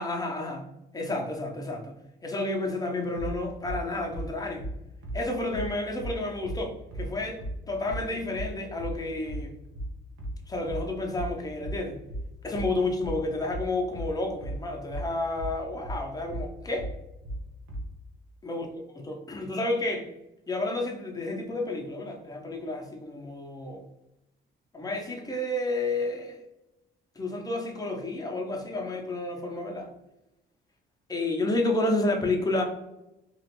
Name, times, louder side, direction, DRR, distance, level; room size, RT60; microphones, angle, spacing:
voice 1, 0.0-4.7 5.1-7.4 7.7-9.6 10.5-12.0 12.4-16.9 18.4-18.7 19.0-20.1 20.5-23.8 24.7-26.4 27.2-29.9 31.1-32.6, left 2 dB, 20° left, 1 dB, 0.6 m, -31 dB
sound 1, 3.2-17.9, right 1 dB, 80° right, 0.7 m, -36 dB
2.9 x 2.4 x 2.9 m, 0.93 s
cardioid pair, 90°, 20 cm